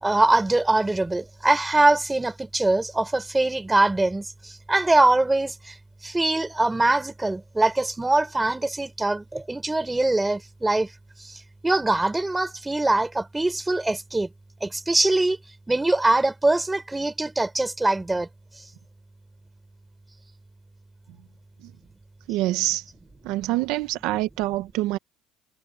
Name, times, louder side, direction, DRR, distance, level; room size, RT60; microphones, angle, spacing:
voice 1, 0.0-5.7 6.0-10.9 11.2-14.3 14.6-15.4 15.7-18.3, right 2 dB, 10° right, 3.8 m, -23 dB
voice 2, 22.3-22.8 23.2-25.0, right 17 dB, 70° right, 0.9 m, -25 dB
cardioid pair, 145°, 0 cm